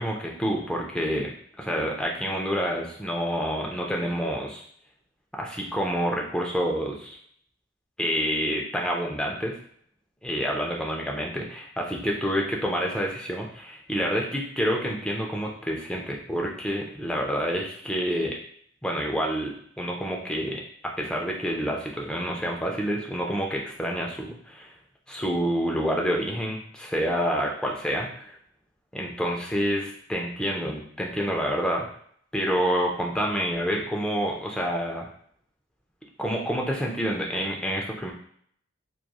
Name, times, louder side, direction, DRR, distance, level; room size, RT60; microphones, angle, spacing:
voice 1, 0.0-4.6 5.3-7.2 8.0-9.6 10.2-18.4 18.8-24.7 25.1-28.1 28.9-31.9 32.3-35.1 36.2-38.1, equal, 5° left, -1 dB, 0.4 m, -28 dB
3.1 x 2.3 x 2.2 m, 0.62 s
head